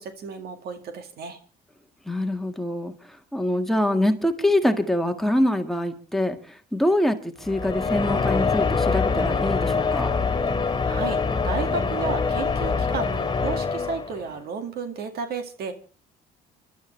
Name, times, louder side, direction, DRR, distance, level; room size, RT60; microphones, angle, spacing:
voice 1, 0.0-1.4 10.8-11.2 11.4-15.7, right 5 dB, 65° right, 7 dB, 2.1 m, -33 dB
voice 2, 2.1-10.1, left 1 dB, ahead, 5 dB, 1.8 m, -24 dB
sound 1, 7.5-14.3, left 4 dB, 25° left, 2.5 m, -24 dB
30.0 x 12.0 x 3.3 m, 0.36 s
cardioid pair, 110°, 17 cm